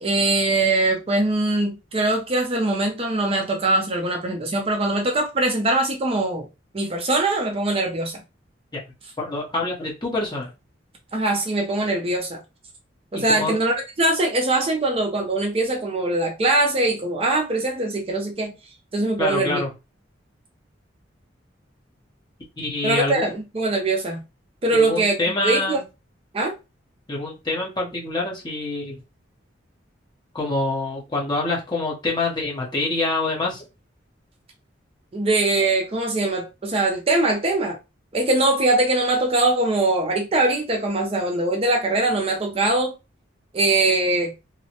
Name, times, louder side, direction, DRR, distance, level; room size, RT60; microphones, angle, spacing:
voice 1, 0.0-6.5 6.7-8.2 11.1-12.4 13.1-18.5 18.9-19.6 22.8-24.2 24.6-25.2 25.4-25.8 26.3-26.6 35.1-37.8 38.1-42.9 43.5-44.3, right 2 dB, 30° right, 0.5 m, -22 dB
voice 2, 9.2-10.5 13.1-13.5 19.2-19.7 22.6-23.2 24.7-25.8 27.1-29.0 30.3-33.6, left 2 dB, 25° left, 1.0 m, -26 dB
3.0 x 2.0 x 2.8 m
head